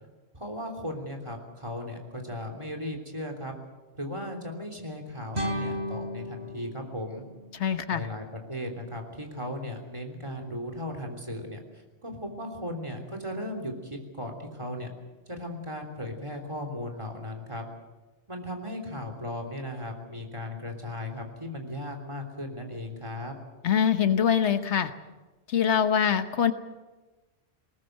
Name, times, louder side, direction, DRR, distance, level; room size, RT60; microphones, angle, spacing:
voice 1, 0.3-3.5 4.0-7.2 7.9-11.6 12.0-14.9 15.3-17.6 18.3-23.3, left 1 dB, 25° right, 4 dB, 3.4 m, -36 dB
sound 1, 5.3-8.4, equal, 70° right, 3.6 m, -35 dB
voice 2, 7.5-8.1 23.6-24.9 25.5-26.5, left 8 dB, 80° left, 10 dB, 1.4 m, -24 dB
21.0 x 19.0 x 8.0 m, 1.2 s
omnidirectional pair, 1.2 m